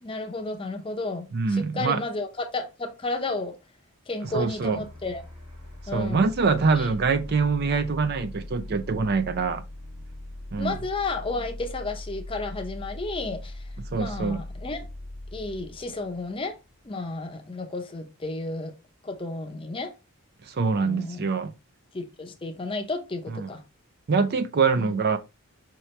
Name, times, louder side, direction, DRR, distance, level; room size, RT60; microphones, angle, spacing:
voice 1, 0.0-3.6 4.1-5.2 5.9-6.3 6.8-6.9 10.6-13.6 13.9-14.9 15.3-16.6 16.9-18.7 19.0-19.9 20.8-21.3 21.9-23.6 24.8-25.0, left 2 dB, 25° left, 0.6 m, -32 dB
voice 2, 1.3-2.0 4.3-4.8 5.9-9.6 10.5-10.8 13.9-14.4 20.5-21.5 23.3-23.5 24.1-25.2, right 4 dB, 45° right, 0.4 m, -24 dB
sound 1, 4.2-17.0, left 1 dB, 85° right, 1.6 m, -40 dB
5.7 x 2.9 x 3.1 m
head